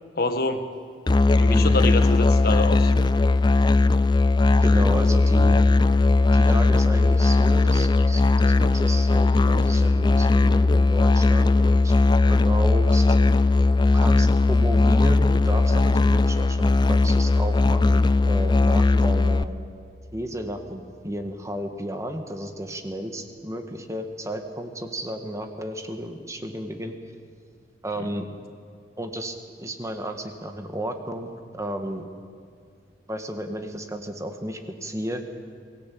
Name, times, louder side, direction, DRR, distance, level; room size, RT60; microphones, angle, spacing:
voice 1, 0.2-0.6 1.4-2.9, left 2 dB, 60° left, 8 dB, 1.5 m, -26 dB
Musical instrument, 1.1-19.4, left 2 dB, 25° left, 0.5 m, -18 dB
voice 2, 4.6-5.6 6.3-11.9 12.3-13.1 13.9-19.5 20.1-27.0 27.8-28.3 29.0-31.3 31.6-32.0 33.1-35.2, right 1 dB, 20° right, 6 dB, 1.8 m, -32 dB
23.5 x 18.5 x 8.6 m, 2.2 s
head